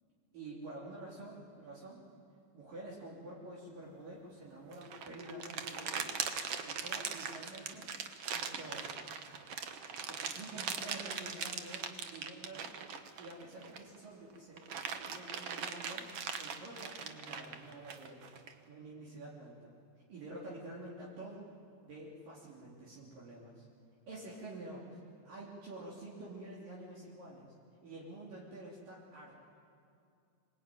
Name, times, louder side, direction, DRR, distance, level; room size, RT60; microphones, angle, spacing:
voice 1, 0.3-2.0 2.5-6.1 6.6-7.9 8.3-8.9 10.1-12.7 13.2-14.6 14.9-18.3 18.7-19.7 20.1-21.5 21.8-23.7 24.1-27.5 27.8-29.5, right 2 dB, 60° right, -6 dB, 4.8 m, -48 dB
sound 1, 4.7-14.0 14.3-18.5, right 6 dB, 85° right, 1.3 m, -40 dB
26.0 x 22.0 x 9.3 m, 2.5 s
omnidirectional pair, 4.6 m